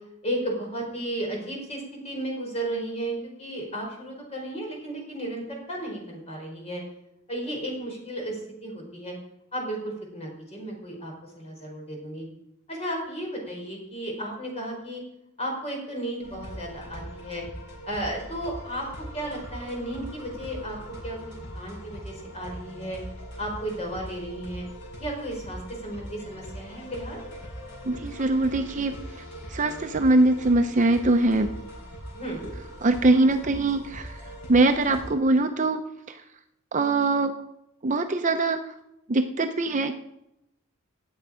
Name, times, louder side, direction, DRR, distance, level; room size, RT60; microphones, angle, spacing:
voice 1, 0.2-6.8 7.3-9.1 9.5-12.3 12.7-15.0 15.4-17.4 17.9-18.9 19.1-20.8 21.0-23.0 23.4-24.6 25.0-27.2 32.1-32.5, right 1 dB, 30° left, 0 dB, 4.7 m, -34 dB
sound 1, 16.2-35.1, equal, 60° left, 6.4 m, -41 dB
voice 2, 27.9-28.9 29.5-31.5 32.8-34.2 34.5-35.8 36.1-36.2 36.7-37.3 37.8-38.6 39.1-39.9, right 2 dB, 35° right, 6 dB, 0.7 m, -22 dB
18.0 x 7.9 x 5.0 m, 0.84 s
head